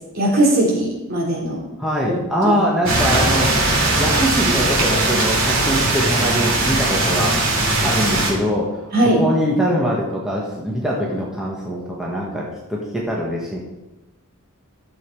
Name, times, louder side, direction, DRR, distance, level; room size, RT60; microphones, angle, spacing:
voice 1, 0.1-1.6 2.1-2.2 2.4-2.5 3.1-3.2 8.9-9.2, right 1 dB, 45° right, -3 dB, 3.5 m, -19 dB
voice 2, 1.8-3.5 4.0-7.4 7.8-8.9 9.2-13.6, equal, ahead, -4 dB, 1.3 m, -22 dB
sound 1, 2.9-8.3, right 2 dB, 65° right, 2.9 m, -19 dB
12.0 x 7.3 x 4.7 m, 0.99 s
head